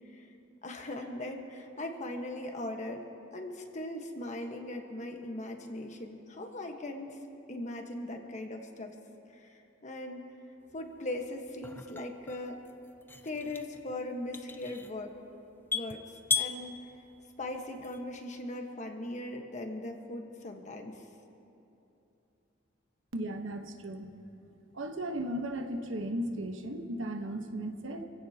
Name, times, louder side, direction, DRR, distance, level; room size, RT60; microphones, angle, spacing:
voice 1, 0.6-3.0 3.3-7.2 7.5-8.9 9.3-10.3 10.7-12.6 13.2-15.2 15.7-16.0 16.3-16.8 17.4-21.0, left 1 dB, 40° left, 3 dB, 1.3 m, -39 dB
sound 1, 10.7-18.2, left 5 dB, 10° left, 0.5 m, -38 dB
voice 2, 23.1-24.1 24.7-28.1, right 1 dB, 80° right, 5 dB, 1.2 m, -36 dB
27.5 x 16.5 x 2.9 m, 2.9 s
head